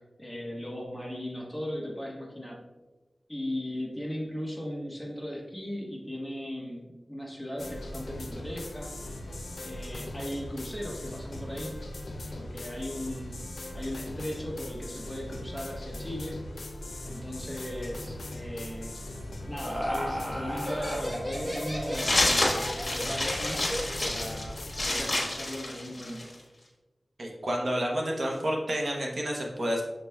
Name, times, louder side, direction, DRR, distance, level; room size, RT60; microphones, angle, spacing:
voice 1, 0.0-2.6 3.3-8.9 9.6-11.8 12.3-13.3 13.7-16.4 17.0-18.9 19.5-23.7 24.0-26.3, equal, 10° left, -2 dB, 1.1 m, -37 dB
sound 1, 7.6-25.0, left 1 dB, 80° left, 0.5 m, -40 dB
Laughter, 19.2-24.4, equal, 15° right, 1.2 m, -34 dB
sound 2, 21.9-26.3, left 1 dB, 45° left, 1.2 m, -29 dB
voice 2, 27.2-29.8, equal, 65° right, -1 dB, 0.7 m, -29 dB
6.5 x 3.1 x 2.3 m, 1.2 s
cardioid pair, 45°, 0 cm